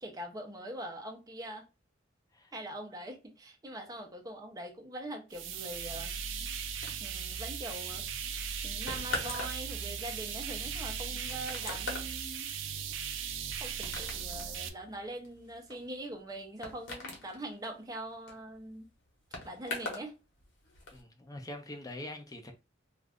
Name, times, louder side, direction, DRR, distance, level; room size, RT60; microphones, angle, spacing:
voice 1, 0.0-1.6 2.5-6.2 7.0-8.0 8.6-12.5 13.6-18.9 19.4-20.1, right 1 dB, 20° right, 0.7 m, -43 dB
sound 1, 5.3-14.7, right 7 dB, 75° right, 0.5 m, -38 dB
sound 2, 6.8-20.1 20.4-21.0, left 2 dB, 70° left, 1.0 m, -43 dB
voice 2, 20.9-22.5, left 1 dB, 20° left, 0.5 m, -44 dB
2.5 x 2.4 x 3.4 m
head